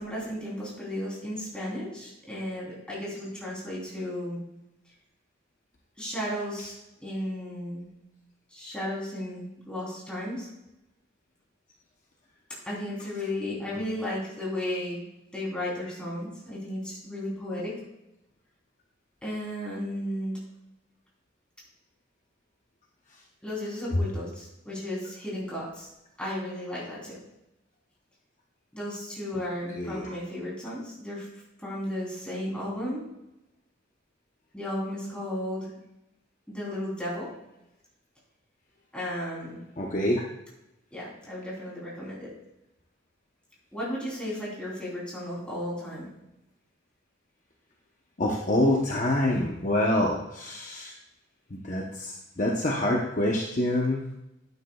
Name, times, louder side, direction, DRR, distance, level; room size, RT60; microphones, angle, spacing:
voice 1, 0.0-4.4 6.0-6.7 7.0-7.9 8.5-10.5 12.6-15.0 15.3-17.7 19.2-20.4 23.4-25.9 26.2-27.2 28.7-31.3 31.6-33.0 34.5-35.7 36.5-37.3 38.9-39.6 40.9-42.3 43.7-46.1, left 1 dB, 5° left, -6 dB, 3.3 m, -34 dB
voice 2, 39.8-40.2 48.2-50.9 51.5-54.0, left 1 dB, 35° left, -1 dB, 0.8 m, -26 dB
12.0 x 9.5 x 2.3 m, 0.91 s
head